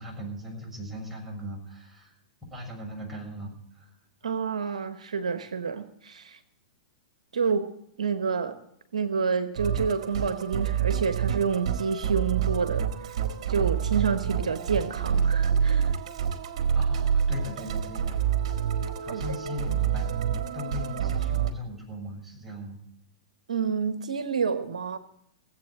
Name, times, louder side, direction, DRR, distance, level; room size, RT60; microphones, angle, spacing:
voice 1, 0.0-2.1 2.5-3.9 16.7-18.2 19.0-22.8, left 1 dB, 5° right, -3 dB, 6.8 m, -38 dB
voice 2, 4.2-6.4 7.3-7.7 8.0-8.6 8.9-13.1 13.5-15.9 19.1-19.2 23.5-25.0, right 5 dB, 80° right, 11 dB, 1.0 m, -28 dB
Musical instrument, 9.6-21.5, right 8 dB, 60° right, 1.6 m, -27 dB
17.5 x 8.1 x 7.3 m, 0.76 s
hypercardioid pair, 110°, 4 cm